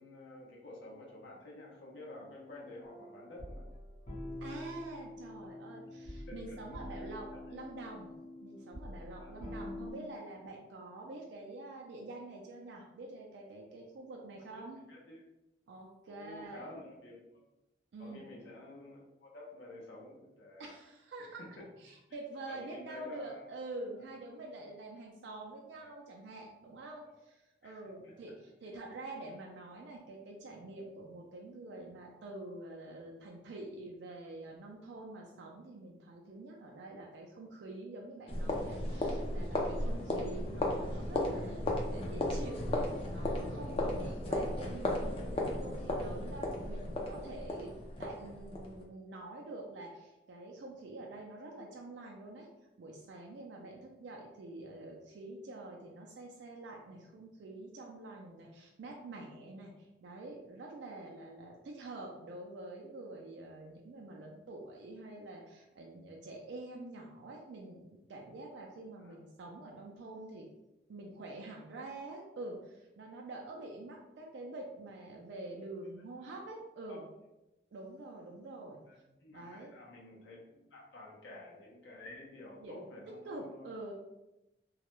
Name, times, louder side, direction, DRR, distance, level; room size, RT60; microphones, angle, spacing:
voice 1, 0.0-3.7 6.1-6.6 7.3-7.4 9.2-9.6 14.5-15.2 16.1-17.4 18.0-20.7 21.4-21.5 21.9-22.0 22.5-23.4 25.8-25.9 27.1-27.2 27.6-28.1 40.1-40.2 69.0-69.2 76.9-77.0 78.9-83.7, left 1 dB, 85° left, -3 dB, 0.6 m, -51 dB
sound 1, 2.8-9.9, left 1 dB, 50° left, 1.0 m, -46 dB
voice 2, 4.4-8.1 8.4-14.8 15.7-16.7 17.9-18.3 20.6-21.4 21.8-47.7 48.0-52.5 52.8-70.5 70.9-77.1 77.7-78.8 79.3-79.7 82.6-82.9 83.3-83.9, right 2 dB, 75° right, -1 dB, 0.3 m, -46 dB
sound 2, 38.3-48.8, left 1 dB, 30° left, 0.3 m, -35 dB
2.3 x 2.0 x 2.9 m, 0.96 s
head